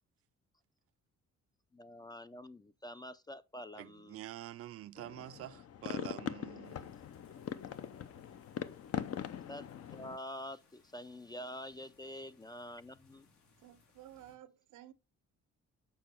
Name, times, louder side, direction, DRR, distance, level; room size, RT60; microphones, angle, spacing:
voice 1, 1.7-4.2 9.5-13.3, left 1 dB, 15° left, 0.3 m, -47 dB
voice 2, 3.8-7.0 8.2-8.3, right 13 dB, 50° right, 0.4 m, -47 dB
sound 1, 5.0-10.2, left 9 dB, 55° left, 0.7 m, -42 dB
sound 2, 6.6-14.4, left 4 dB, 70° left, 1.8 m, -68 dB
voice 3, 13.6-14.9, right 13 dB, 85° right, 0.7 m, -54 dB
7.0 x 4.7 x 4.4 m
cardioid pair, 90°, 30 cm